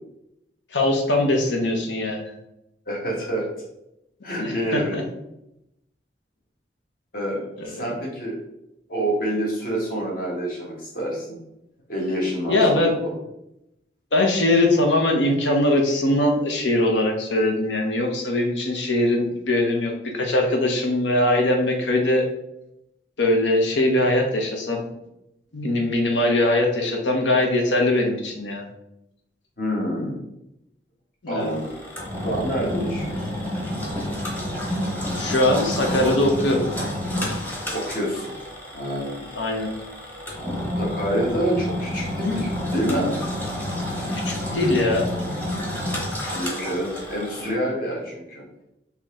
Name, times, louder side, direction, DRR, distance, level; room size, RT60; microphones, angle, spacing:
voice 1, 0.7-2.3 4.4-5.0 7.6-7.8 12.5-12.9 14.1-22.2 23.2-24.8 25.5-28.6 31.2-31.5 35.2-36.7 39.4-39.7 44.1-45.1, left 1 dB, 80° left, 2 dB, 0.9 m, -21 dB
voice 2, 2.9-3.5 4.2-5.0 7.1-8.4 8.9-11.4 11.9-13.1 29.6-30.2 31.3-31.7 32.2-33.4 37.7-38.3 38.7-39.3 40.8-43.2 44.5-44.8 46.3-48.4, equal, 50° left, -3 dB, 1.5 m, -27 dB
Engine, 31.4-47.5, left 1 dB, 10° left, 1.0 m, -29 dB
4.5 x 2.9 x 3.6 m, 0.86 s
head